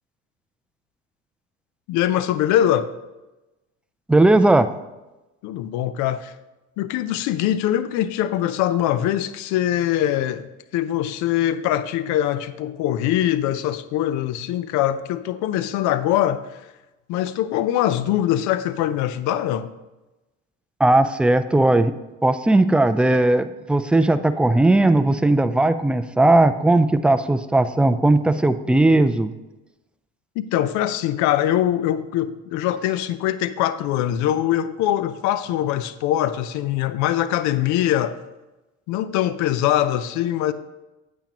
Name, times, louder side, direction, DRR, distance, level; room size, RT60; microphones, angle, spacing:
voice 1, 1.9-2.9 5.4-6.3 6.8-10.4 10.7-16.4 17.1-19.7 30.4-38.2 38.9-40.5, left 12 dB, 75° left, 0.6 m, -22 dB
voice 2, 4.1-4.7 20.8-21.9 22.2-29.3, right 2 dB, 5° right, 0.3 m, -17 dB
8.8 x 8.5 x 2.9 m
supercardioid pair, 95°, 30 cm